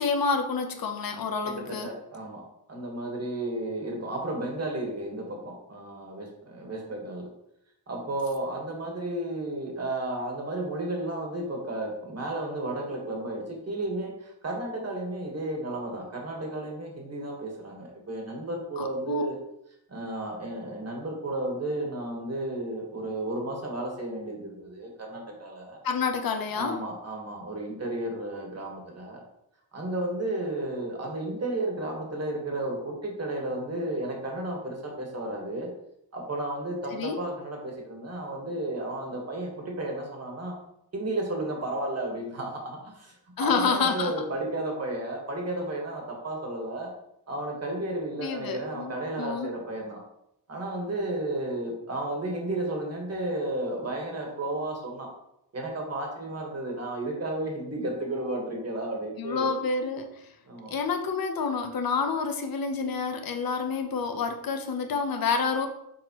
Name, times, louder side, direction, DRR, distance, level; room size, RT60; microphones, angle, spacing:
voice 1, 0.0-1.9 18.8-19.2 25.8-26.8 36.9-37.2 43.4-44.1 48.2-49.5 59.2-60.1 60.7-65.7, left 5 dB, 65° left, 6 dB, 0.9 m, -28 dB
voice 2, 1.4-2.4 2.7-7.3 7.9-19.4 19.9-25.8 26.5-29.2 29.7-35.7 36.1-40.5 40.9-46.9 47.3-50.0 50.5-55.1 55.5-59.5 60.5-60.7, right 1 dB, 45° right, 0 dB, 1.6 m, -33 dB
7.0 x 4.5 x 3.1 m, 0.79 s
wide cardioid pair, 130°, 37 cm